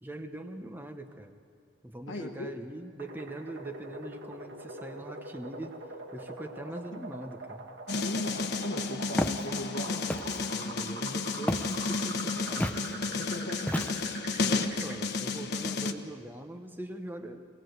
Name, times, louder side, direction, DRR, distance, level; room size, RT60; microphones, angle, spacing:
voice 1, 0.0-1.4 1.8-5.8 6.1-7.7 10.5-13.5 14.4-17.5, right 1 dB, 10° right, 5 dB, 1.0 m, -42 dB
voice 2, 2.1-2.6 6.9-7.0 7.9-10.3 13.2-13.9, left 1 dB, 75° left, 3 dB, 1.3 m, -39 dB
sound 1, 3.0-15.0, right 2 dB, 65° right, 2.1 m, -44 dB
sound 2, 7.9-15.9, left 4 dB, 60° left, 1.0 m, -32 dB
Walk footsteps, 9.2-9.4 10.1-10.5 11.5-11.8 12.6-12.8 13.7-14.2, left 1 dB, 10° left, 0.6 m, -31 dB
23.5 x 18.5 x 8.0 m, 2.2 s
head